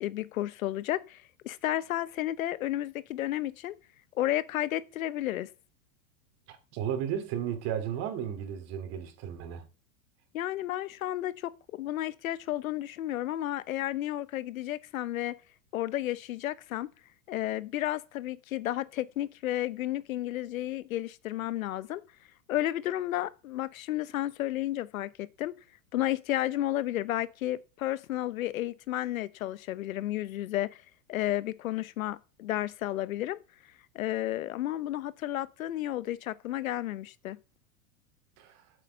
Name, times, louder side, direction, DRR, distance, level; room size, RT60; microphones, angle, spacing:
voice 1, 0.0-3.8 4.1-5.5 10.3-15.4 15.7-16.9 17.3-22.0 22.5-25.5 25.9-30.8 31.1-33.4 33.9-37.4, left 14 dB, 85° left, 1.0 m, -32 dB
voice 2, 6.5-9.6 38.4-38.6, right 9 dB, 40° right, 2.9 m, -34 dB
13.0 x 8.1 x 7.0 m
supercardioid pair, 150°, 40 cm